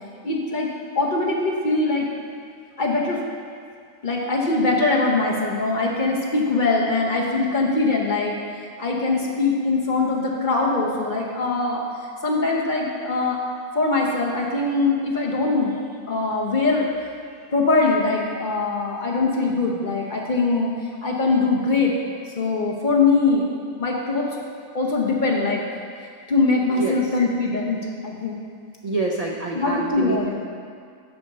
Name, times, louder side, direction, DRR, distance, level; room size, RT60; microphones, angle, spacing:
voice 1, 0.2-0.7 0.9-2.1 2.8-3.2 4.0-8.4 8.8-11.8 12.2-13.4 13.7-15.7 16.1-16.9 17.5-20.7 21.0-21.9 22.4-23.5 23.8-24.3 24.7-25.6 26.0-28.4 29.6-30.4, left 3 dB, 40° left, -2 dB, 0.9 m, -22 dB
voice 2, 26.7-27.2 28.8-30.2, right 3 dB, 70° right, -1 dB, 0.3 m, -27 dB
7.0 x 5.2 x 6.6 m, 2.2 s
omnidirectional pair, 1.5 m